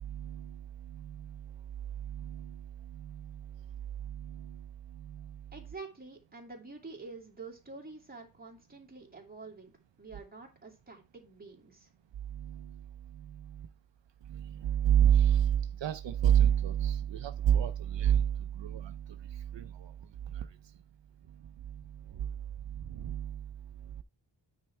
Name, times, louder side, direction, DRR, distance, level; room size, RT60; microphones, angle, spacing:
voice 1, 0.0-1.4 2.0-2.6 2.9-3.4 4.0-4.6 4.9-5.3 12.3-12.8 13.1-13.7 14.3-19.0 19.3-19.9 20.3-20.5 22.2-22.3 22.8-23.4, right 9 dB, 75° right, 0.6 m, -29 dB
voice 2, 5.5-9.7 10.0-11.9, right 3 dB, 20° right, 2.4 m, -47 dB
9.3 x 4.6 x 4.3 m
wide cardioid pair, 155°, 44 cm